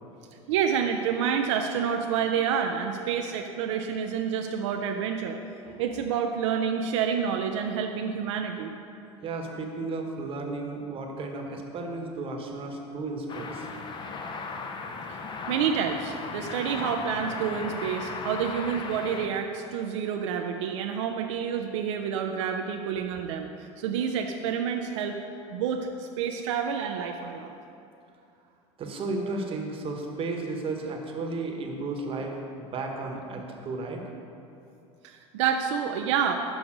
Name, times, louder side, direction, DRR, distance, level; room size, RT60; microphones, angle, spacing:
voice 1, 0.5-5.4 5.8-8.7 15.1-25.2 25.5-27.5 35.0-36.3, right 7 dB, 85° right, 4 dB, 0.4 m, -28 dB
voice 2, 9.2-13.7 28.8-34.0, right 3 dB, 35° right, 2 dB, 1.0 m, -34 dB
sound 1, 13.3-19.3, left 4 dB, 30° left, 0.6 m, -36 dB
6.2 x 5.2 x 4.9 m, 2.7 s
supercardioid pair, 105°, 15 cm